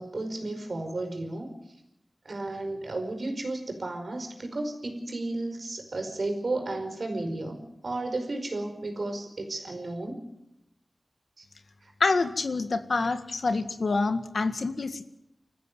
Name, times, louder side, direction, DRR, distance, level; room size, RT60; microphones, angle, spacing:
voice 1, 0.0-1.5 2.2-10.2 11.4-11.5 11.8-11.9, right 2 dB, 65° right, 5 dB, 5.0 m, -33 dB
voice 2, 12.0-15.0, left 3 dB, 80° left, 9 dB, 1.8 m, -27 dB
26.0 x 14.5 x 9.5 m, 0.88 s
wide cardioid pair, 85°, 0 cm